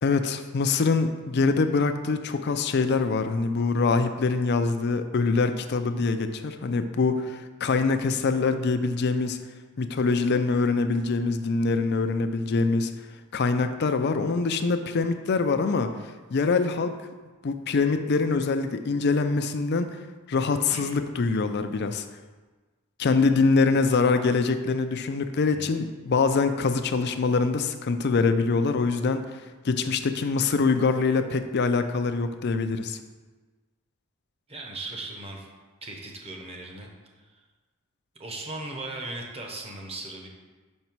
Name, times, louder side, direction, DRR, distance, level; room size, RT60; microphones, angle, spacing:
voice 1, 0.0-9.4 9.8-12.9 13.3-15.9 16.3-17.0 17.4-20.0 20.3-22.0 23.0-29.3 29.6-33.0, left 4 dB, 50° left, 9 dB, 0.4 m, -24 dB
voice 2, 34.5-35.5 35.8-36.9 37.2-37.3 38.2-40.3, right 2 dB, 30° right, 1 dB, 1.0 m, -38 dB
5.8 x 5.4 x 4.5 m, 1.3 s
head